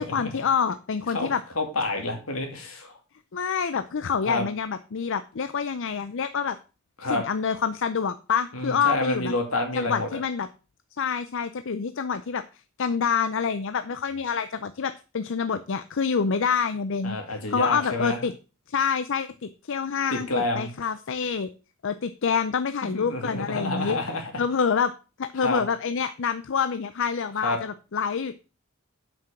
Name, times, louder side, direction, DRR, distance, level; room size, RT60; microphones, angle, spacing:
voice 1, 0.0-1.4 3.3-6.6 7.0-9.3 9.7-10.5 11.0-12.4 12.8-18.3 18.7-20.3 20.5-21.5 21.8-24.0 24.4-24.9 25.2-28.4, left 6 dB, 65° left, 11 dB, 0.5 m, -27 dB
voice 2, 1.6-2.9 4.2-4.4 7.0-7.2 8.5-10.2 17.0-18.2 20.1-20.7 22.9-24.3 25.4-25.6 27.4-27.6, left 2 dB, 80° left, 4 dB, 2.6 m, -28 dB
7.8 x 6.1 x 5.8 m, 0.33 s
head